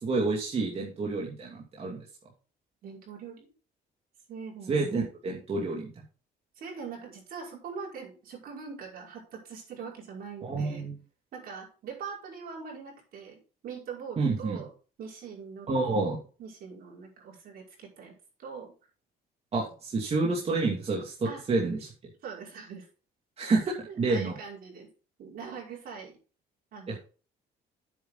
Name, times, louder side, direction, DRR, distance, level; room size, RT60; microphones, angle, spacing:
voice 1, 0.0-2.0 4.7-5.9 10.4-11.0 14.2-14.6 15.7-16.2 19.5-21.9 23.4-24.3 26.9-27.0, right 3 dB, 35° right, -2 dB, 2.6 m, -29 dB
voice 2, 2.8-3.5 4.3-5.0 6.6-10.8 11.3-14.7 15.0-15.7 16.4-18.1 18.4-18.7 21.2-21.5 22.2-22.9 23.9-24.9 25.2-26.2 26.7-27.0, right 5 dB, 60° right, -2 dB, 5.5 m, -42 dB
9.4 x 8.1 x 4.0 m, 0.36 s
cardioid pair, 110°, 17 cm